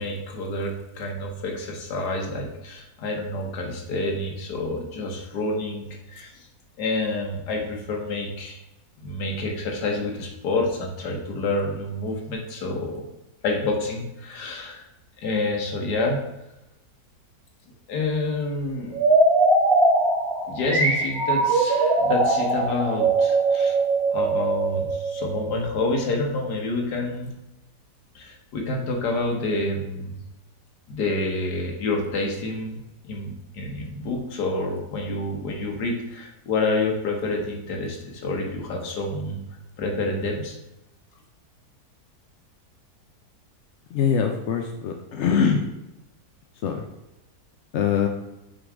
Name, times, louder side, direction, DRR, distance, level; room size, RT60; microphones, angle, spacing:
voice 1, 0.0-6.5 6.8-8.6 9.0-13.1 13.4-14.9 15.2-16.2 17.9-19.0 20.5-23.8 24.1-27.3 28.2-30.2 30.9-32.8 33.0-39.4 39.8-40.6, left 2 dB, 80° left, 1 dB, 1.6 m, -28 dB
sound 1, 18.9-25.6, right 2 dB, 40° right, 1.4 m, -21 dB
voice 2, 43.9-45.6 46.6-46.8 47.7-48.1, left 7 dB, 65° left, 3 dB, 0.7 m, -23 dB
6.4 x 3.8 x 4.8 m, 0.94 s
omnidirectional pair, 1.7 m